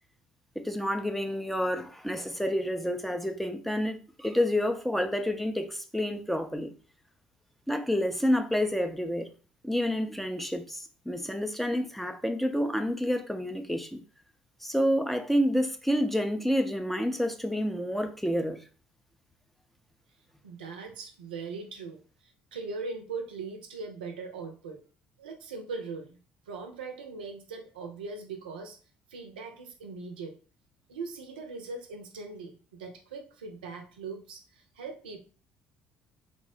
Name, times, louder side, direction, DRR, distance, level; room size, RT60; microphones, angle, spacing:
voice 1, 0.6-6.7 7.7-9.3 9.6-14.0 14.6-18.6, equal, 5° left, 0.4 m, -29 dB
voice 2, 20.4-24.8 25.2-26.2 26.5-28.8 29.1-30.4 30.9-35.2, right 4 dB, 80° right, 0.4 m, -40 dB
3.1 x 2.0 x 2.6 m
figure-of-eight pair, 50°, 5 cm